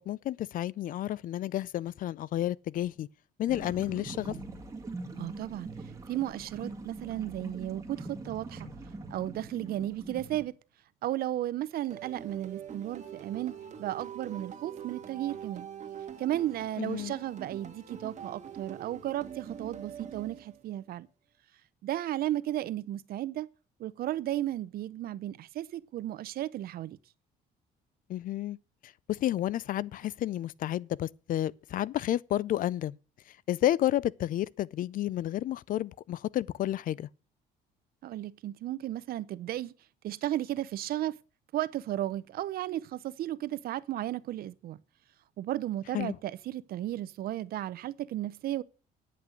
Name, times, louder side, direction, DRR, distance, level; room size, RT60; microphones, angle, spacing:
voice 1, 0.0-3.1 3.4-4.4 16.8-17.1 28.1-28.6 28.8-33.0 33.5-37.1 45.9-46.2, left 13 dB, 55° left, 0.4 m, -31 dB
sound 1, 3.5-10.5, right 2 dB, 20° right, 1.9 m, -42 dB
voice 2, 5.2-5.7 6.1-8.7 9.1-10.5 11.0-13.5 13.8-15.7 16.2-21.1 21.8-23.5 23.8-27.0 38.0-39.7 40.0-41.2 41.5-44.8 45.4-48.6, right 13 dB, 60° right, 0.6 m, -34 dB
sound 2, 11.9-20.8, right 8 dB, 45° right, 1.8 m, -44 dB
9.7 x 5.9 x 8.2 m
cardioid pair, 110°, 17 cm